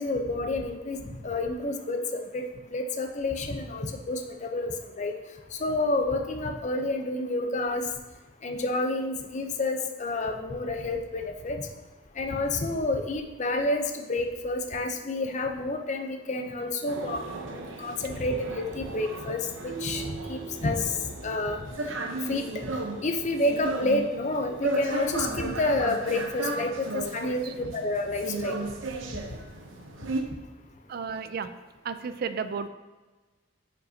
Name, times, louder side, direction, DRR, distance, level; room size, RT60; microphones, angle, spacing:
voice 1, 0.0-2.5 2.7-5.1 5.5-7.8 8.4-11.7 12.2-17.2 17.5-20.9 21.2-21.6 22.3-22.7 23.0-27.4 27.7-28.6, left 2 dB, 40° left, 5 dB, 0.6 m, -29 dB
sound 1, 16.9-30.2, right 2 dB, 85° right, 0.8 m, -35 dB
voice 2, 26.8-27.5 30.9-31.5 31.8-32.7, right 5 dB, 50° right, 11 dB, 0.4 m, -34 dB
9.0 x 5.3 x 2.7 m, 1.2 s
head